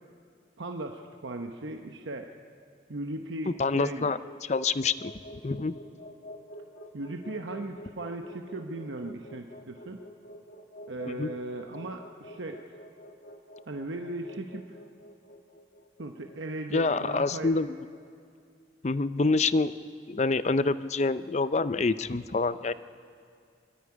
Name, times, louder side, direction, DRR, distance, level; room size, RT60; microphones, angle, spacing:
voice 1, 0.6-2.3 2.9-4.0 6.9-10.0 10.9-12.8 13.7-14.8 16.0-17.5, right 2 dB, 80° right, 4 dB, 0.9 m, -37 dB
sound 1, 3.5-17.6, equal, 55° left, 1.4 m, -49 dB
voice 2, 3.6-5.1 5.4-5.8 11.1-11.3 16.7-17.8 18.8-19.7 20.1-22.7, left 3 dB, 35° left, 14 dB, 0.5 m, -27 dB
22.0 x 13.5 x 9.7 m, 2.3 s
head